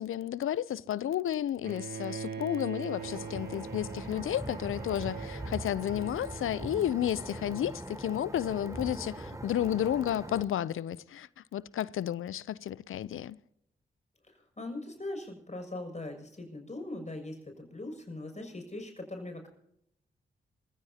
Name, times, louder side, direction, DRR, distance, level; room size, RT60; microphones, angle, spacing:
voice 1, 0.0-13.4, left 11 dB, 75° left, 0.6 m, -32 dB
Bowed string instrument, 1.6-7.7, right 6 dB, 50° right, 2.3 m, -43 dB
sound 1, 3.0-10.4, right 1 dB, 15° right, 3.5 m, -41 dB
voice 2, 14.2-19.5, left 2 dB, 35° left, 6.5 m, -41 dB
27.5 x 15.0 x 2.8 m
supercardioid pair, 40°, 21 cm